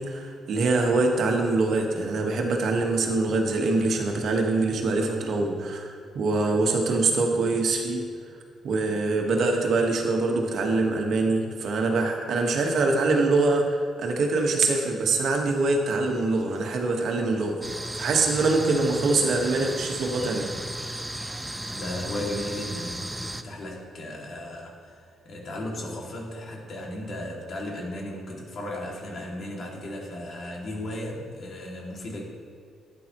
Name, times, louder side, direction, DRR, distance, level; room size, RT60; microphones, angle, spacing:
voice 1, 0.0-8.0 8.6-17.7 17.9-20.5, right 3 dB, 65° right, 2 dB, 1.4 m, -24 dB
sound 1, 17.6-23.4, right 1 dB, 10° right, 0.5 m, -35 dB
voice 2, 21.7-32.2, left 1 dB, 55° left, -2 dB, 2.4 m, -35 dB
11.5 x 9.1 x 3.1 m, 2.3 s
cardioid pair, 90°, 0 cm